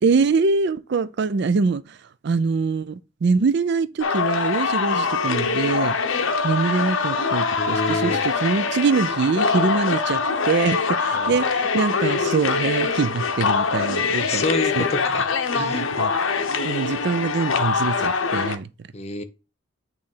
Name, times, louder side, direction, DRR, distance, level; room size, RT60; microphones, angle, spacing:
voice 1, 0.0-2.0 2.2-6.0 6.4-14.4 14.7-14.9 15.5-16.1 16.6-18.7, right 4 dB, 55° right, 0.4 m, -24 dB
sound 1, 4.0-18.6, left 5 dB, 70° left, 0.7 m, -23 dB
voice 2, 7.6-8.2 11.1-11.3 14.2-15.9 18.9-19.2, left 2 dB, 30° left, 0.7 m, -28 dB
8.7 x 3.2 x 5.5 m
head